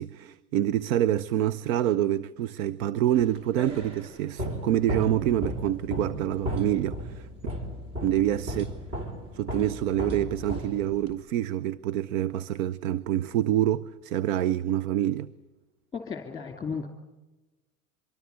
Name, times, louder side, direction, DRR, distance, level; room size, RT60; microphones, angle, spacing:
voice 1, 0.0-7.3 8.0-8.7 9.3-15.3, right 12 dB, 70° right, 0.8 m, -26 dB
sound 1, 3.1-11.2, equal, 30° right, 3.6 m, -35 dB
voice 2, 15.9-16.9, left 5 dB, 10° left, 2.7 m, -34 dB
25.0 x 22.5 x 8.1 m
hypercardioid pair, 100°, 43 cm